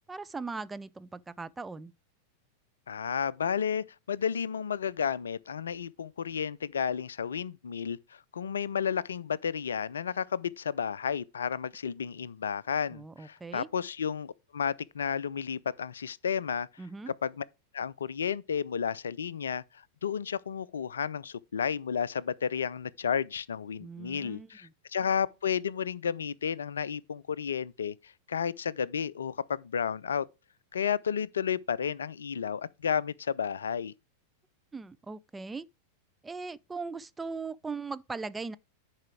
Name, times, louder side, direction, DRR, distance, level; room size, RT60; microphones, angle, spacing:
voice 1, 0.1-1.9 12.9-13.7 16.8-17.1 23.8-24.7 34.7-35.7 36.2-38.6, right 4 dB, 10° right, 0.4 m, -39 dB
voice 2, 2.9-16.7 17.1-17.4 17.7-19.6 20.0-30.3 30.7-33.9, left 7 dB, 70° left, 0.4 m, -32 dB
10.5 x 4.9 x 4.6 m
figure-of-eight pair, 90°, 0 cm